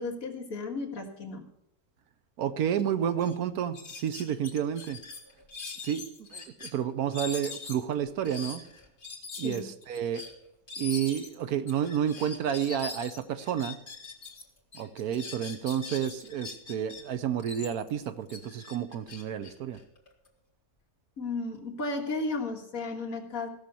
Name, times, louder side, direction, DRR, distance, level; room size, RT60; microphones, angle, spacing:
voice 1, 0.0-1.4 9.4-9.6 21.2-23.5, left 3 dB, 60° left, 0 dB, 2.1 m, -34 dB
voice 2, 2.4-5.0 5.8-8.7 9.4-10.2 10.8-13.8 14.7-19.8, right 9 dB, 70° right, 12 dB, 1.2 m, -30 dB
sound 1, 2.8-2.9 3.2-3.4 3.7-6.7 7.1-14.4 14.7-17.0 17.4-20.3, left 4 dB, 35° left, 2.2 m, -42 dB
15.5 x 6.6 x 6.9 m, 0.76 s
omnidirectional pair, 1.7 m